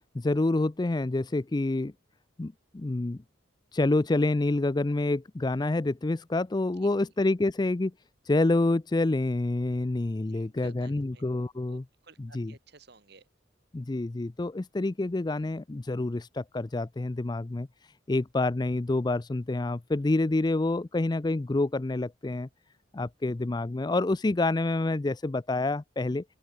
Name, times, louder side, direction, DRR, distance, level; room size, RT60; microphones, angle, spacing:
voice 1, 0.1-1.9 2.4-3.2 3.7-7.9 8.3-11.8 12.2-12.5 13.7-17.7 18.1-22.5 22.9-26.2, left 2 dB, 20° left, 0.4 m, -27 dB
voice 2, 6.8-7.1 10.2-11.2 11.7-13.3, right 3 dB, 55° right, 2.2 m, -54 dB
open air
head